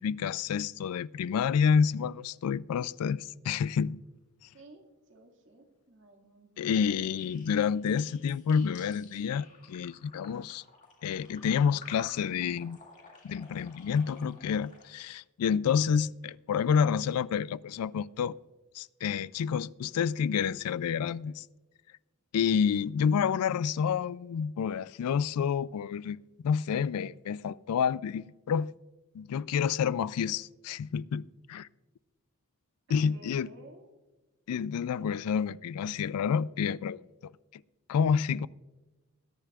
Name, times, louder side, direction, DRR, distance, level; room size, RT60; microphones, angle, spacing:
voice 1, 0.0-4.0 6.6-10.6 11.0-12.8 13.2-18.3 18.7-21.4 22.3-26.2 26.4-28.7 29.1-31.7 32.9-33.5 34.5-37.0 37.9-38.5, left 7 dB, 80° left, 0.3 m, -29 dB
voice 2, 4.5-6.5 21.2-21.3 32.9-33.9, right 2 dB, 55° right, 1.9 m, -54 dB
sound 1, 7.2-14.9, left 4 dB, 35° left, 2.2 m, -53 dB
21.0 x 10.0 x 2.4 m
head